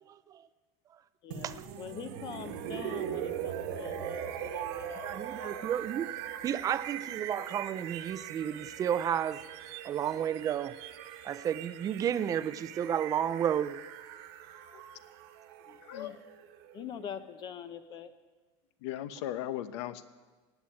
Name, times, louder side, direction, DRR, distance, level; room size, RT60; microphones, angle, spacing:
voice 1, 1.2-5.7 15.7-16.2 16.7-18.1, left 8 dB, 35° left, 11 dB, 0.7 m, -44 dB
sound 1, 1.3-17.2, right 10 dB, 65° right, 1.4 m, -41 dB
voice 2, 5.0-6.1 6.4-9.4 9.8-10.7 11.2-13.8, right 9 dB, 25° right, 14 dB, 0.5 m, -31 dB
voice 3, 15.9-16.2 18.8-20.1, left 12 dB, 80° left, 13 dB, 1.0 m, -37 dB
17.0 x 9.2 x 8.7 m, 1.3 s
supercardioid pair, 160°, 14 cm